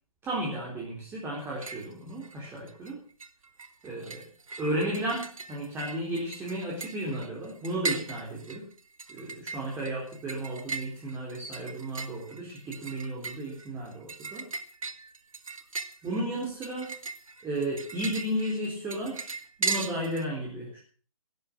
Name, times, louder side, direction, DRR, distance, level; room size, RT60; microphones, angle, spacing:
voice 1, 0.2-3.0 3.8-4.2 4.6-8.7 9.1-14.5 16.0-17.0 17.4-19.3 19.6-20.8, right 1 dB, 10° right, -4 dB, 4.0 m, -33 dB
sound 1, 1.4-1.9 2.2-2.9 3.2-20.3, right 3 dB, 65° right, 1.8 m, -38 dB
16.5 x 12.0 x 6.2 m, 0.43 s
figure-of-eight pair, 135°, 18 cm